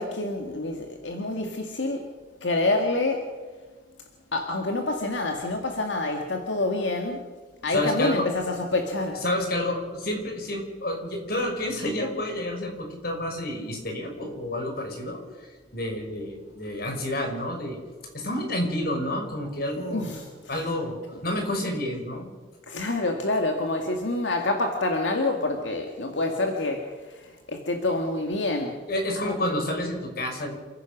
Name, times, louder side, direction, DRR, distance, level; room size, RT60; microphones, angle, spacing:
voice 1, 0.0-2.0 2.4-3.3 4.3-7.2 7.6-9.2 19.9-20.5 22.7-28.8 29.2-29.4, left 2 dB, 85° left, 3 dB, 2.1 m, -27 dB
voice 2, 7.7-8.2 9.2-15.2 15.7-17.8 18.1-20.1 20.5-21.0 21.2-22.3 28.9-30.6, left 1 dB, 55° left, 3 dB, 5.1 m, -29 dB
28.0 x 15.5 x 6.1 m, 1.4 s
head